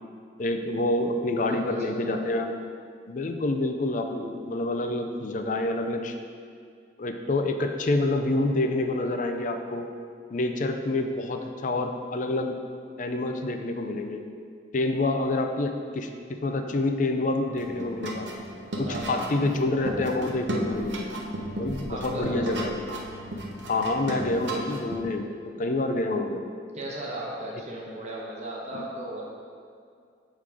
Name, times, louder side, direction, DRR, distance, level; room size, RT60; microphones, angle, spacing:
voice 1, 0.4-2.5 3.1-6.2 7.0-9.9 10.3-12.6 13.0-14.2 14.7-16.1 16.4-18.3 18.8-21.0 21.6-22.8 23.7-25.3 25.6-26.4, left 2 dB, 45° left, 5 dB, 0.4 m, -27 dB
voice 2, 1.4-2.3 18.8-19.5 21.9-22.7 26.7-29.3, right 1 dB, 35° right, -3 dB, 1.1 m, -36 dB
sound 1, 17.5-25.0, right 1 dB, 75° right, 0.8 m, -35 dB
7.2 x 3.8 x 4.8 m, 2.3 s
head